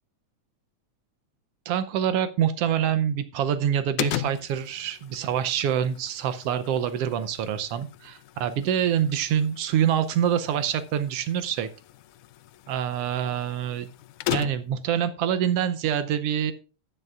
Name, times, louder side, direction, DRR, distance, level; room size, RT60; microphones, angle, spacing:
voice 1, 1.6-11.7 12.7-13.9 14.3-16.5, right 9 dB, 90° right, 11 dB, 1.3 m, -26 dB
sound 1, 4.0-14.9, left 15 dB, 85° left, 2.1 m, -38 dB
13.5 x 10.0 x 2.4 m, 0.34 s
omnidirectional pair, 3.6 m